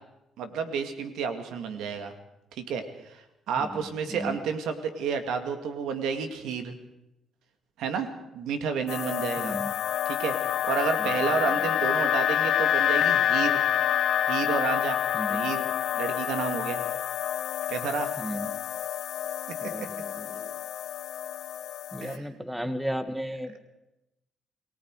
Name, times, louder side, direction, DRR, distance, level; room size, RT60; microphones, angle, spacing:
voice 1, 0.4-2.1 2.5-6.7 7.8-8.1 8.3-9.6 10.1-13.6 14.3-15.0 15.3-15.7 15.9-16.8 17.7-18.1 19.8-19.9 22.0-22.2, right 6 dB, 85° right, 8 dB, 2.3 m, -31 dB
sound 1, 8.9-22.2, left 10 dB, 75° left, 1.1 m, -28 dB
voice 2, 9.4-9.7 11.0-11.1 15.1-15.4 18.2-18.5 19.6-20.5 21.9-23.6, equal, 5° right, 10 dB, 1.8 m, -34 dB
28.0 x 19.5 x 4.9 m, 0.91 s
cardioid pair, 90°, 0 cm